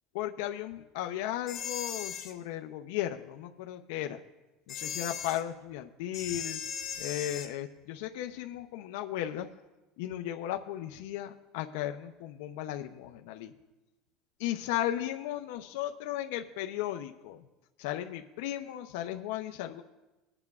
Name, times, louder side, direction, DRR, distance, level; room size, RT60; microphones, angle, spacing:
voice 1, 0.1-4.2 4.7-6.6 7.0-9.5 10.0-13.5 14.4-17.4 17.8-19.8, left 12 dB, 80° left, 5 dB, 0.6 m, -35 dB
sound 1, 1.5-2.3 4.7-5.4 6.1-7.5, left 8 dB, 35° left, 1.1 m, -38 dB
21.5 x 8.8 x 2.4 m, 1.1 s
cardioid pair, 150°, 0 cm